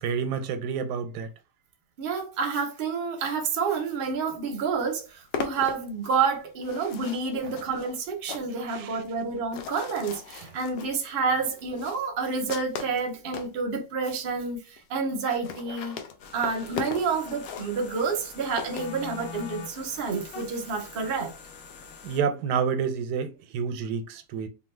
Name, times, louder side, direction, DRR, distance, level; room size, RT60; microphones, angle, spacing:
voice 1, 0.0-1.3 8.7-8.9 22.0-24.5, right 6 dB, 85° right, 1.2 m, -29 dB
voice 2, 2.0-16.0 16.3-21.3, right 5 dB, 50° right, 0.7 m, -29 dB
sound 1, 4.4-4.5 4.7-13.6 14.2-14.3 14.5-14.6 14.8-14.9 15.1-19.5, left 7 dB, 85° left, 1.2 m, -39 dB
sound 2, 16.2-22.2, left 6 dB, 65° left, 0.9 m, -44 dB
2.7 x 2.4 x 3.2 m
omnidirectional pair, 1.7 m